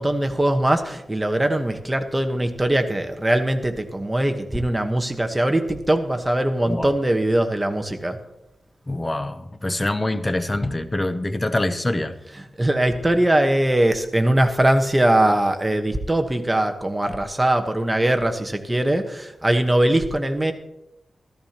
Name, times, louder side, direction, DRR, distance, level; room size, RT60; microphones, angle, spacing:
voice 1, 0.0-8.2 12.6-20.5, right 1 dB, 15° right, 6 dB, 1.2 m, -21 dB
voice 2, 8.9-12.2, left 1 dB, 20° left, 11 dB, 0.7 m, -25 dB
14.0 x 14.0 x 2.9 m, 0.85 s
wide cardioid pair, 90°, 0 cm